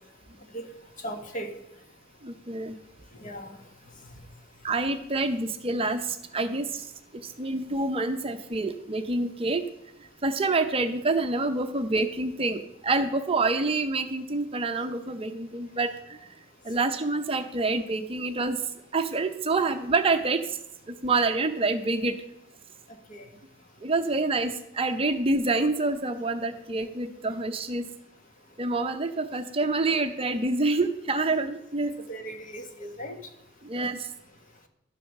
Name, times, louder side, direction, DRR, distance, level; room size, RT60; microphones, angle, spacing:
voice 1, 1.0-1.5 3.2-3.5 23.1-23.2 31.3-31.4 32.1-33.2, right 1 dB, 40° left, 4 dB, 1.6 m, -37 dB
voice 2, 2.2-2.8 4.6-6.9 7.2-9.6 10.2-16.2 16.6-18.6 18.9-20.6 21.0-22.1 23.8-27.8 28.6-31.9 33.6-34.1, right 3 dB, 30° right, 7 dB, 0.7 m, -27 dB
12.0 x 7.6 x 6.5 m, 0.86 s
head